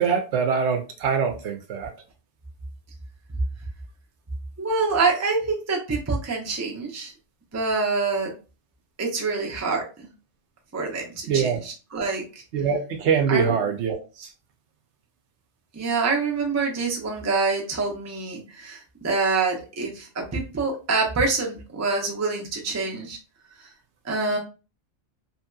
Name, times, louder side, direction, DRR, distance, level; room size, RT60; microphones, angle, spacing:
voice 1, 0.0-1.9 11.3-11.6 12.5-14.3, right 6 dB, 75° right, 0.9 m, -24 dB
voice 2, 4.6-7.1 7.5-8.3 9.0-10.1 10.7-12.2 13.3-13.6 15.7-23.2 23.6-23.7 24.0-24.4, right 4 dB, 20° right, 0.5 m, -26 dB
2.9 x 2.7 x 2.2 m
omnidirectional pair, 1.2 m